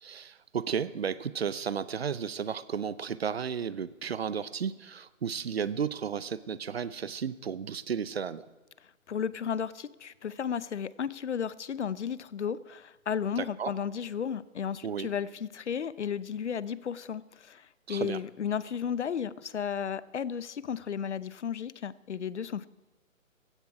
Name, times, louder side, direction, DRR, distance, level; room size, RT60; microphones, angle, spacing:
voice 1, 0.0-8.4 13.4-13.7 14.8-15.1 17.9-18.2, right 7 dB, 50° right, 16 dB, 0.7 m, -33 dB
voice 2, 9.1-22.7, left 7 dB, 55° left, 18 dB, 0.7 m, -34 dB
16.5 x 13.5 x 4.8 m, 1.1 s
hypercardioid pair, 170°, 41 cm